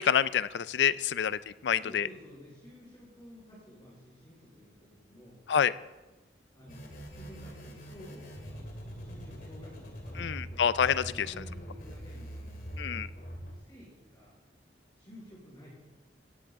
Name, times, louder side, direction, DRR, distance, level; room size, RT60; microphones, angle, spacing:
voice 1, 0.0-2.1 5.5-5.7 10.2-11.3 12.8-13.1, left 8 dB, 80° left, 17 dB, 0.4 m, -27 dB
voice 2, 1.7-5.4 6.5-8.7 9.0-10.7 11.0-12.7 13.1-14.4 14.9-15.7, equal, 25° left, -7 dB, 4.8 m, -52 dB
sound 1, 6.7-13.5, equal, 55° left, 2.5 m, -43 dB
16.0 x 10.0 x 3.6 m, 1.1 s
head